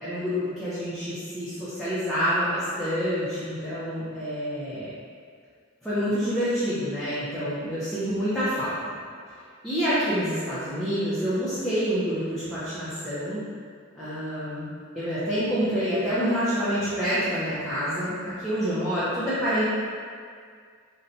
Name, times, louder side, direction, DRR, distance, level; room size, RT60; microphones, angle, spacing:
voice 1, 0.0-4.9 5.8-8.9 9.6-13.4 14.0-14.7 14.9-19.7, equal, ahead, -14 dB, 0.5 m, -27 dB
4.1 x 2.1 x 2.6 m, 2.1 s
head